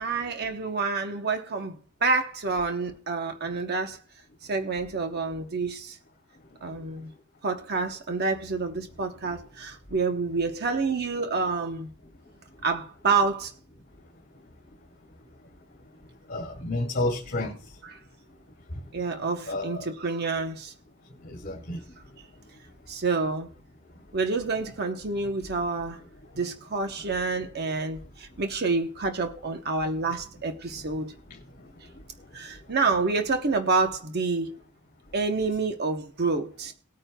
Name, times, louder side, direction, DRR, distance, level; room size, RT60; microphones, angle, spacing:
voice 1, 0.0-4.0 4.4-6.0 6.6-7.1 7.4-11.9 12.6-13.5 17.9-18.0 18.9-20.7 22.9-23.5 24.1-26.0 26.4-31.1 32.3-34.6 35.1-36.7, right 4 dB, 50° right, 0.9 m, -28 dB
voice 2, 16.3-17.5 19.5-19.8 21.2-21.8, left 2 dB, 45° left, 2.5 m, -30 dB
19.5 x 9.0 x 2.2 m
head